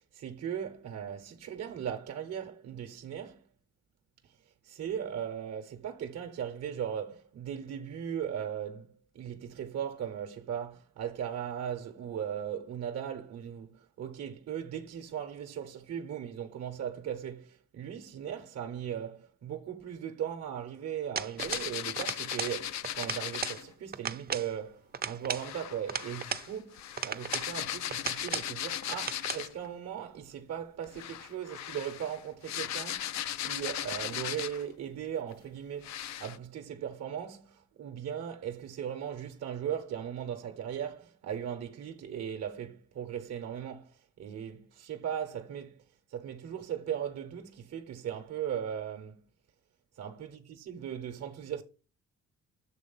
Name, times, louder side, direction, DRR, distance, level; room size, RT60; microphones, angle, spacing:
voice 1, 0.0-3.4 4.2-4.4 4.6-49.2 50.0-50.4 50.7-51.6, right 9 dB, 55° right, 0.9 m, -38 dB
sound 1, 21.2-21.7 22.0-22.6 22.8-23.6 23.9-24.5 24.9-26.5 27.0-27.5 27.9-28.5 28.9-29.4, right 6 dB, 30° right, 0.6 m, -36 dB
sound 2, 21.4-23.7 25.3-29.7 30.8-34.7 35.3-35.4 35.8-36.4, left 11 dB, 65° left, 0.5 m, -37 dB
7.5 x 3.3 x 5.4 m
supercardioid pair, 70°, 31 cm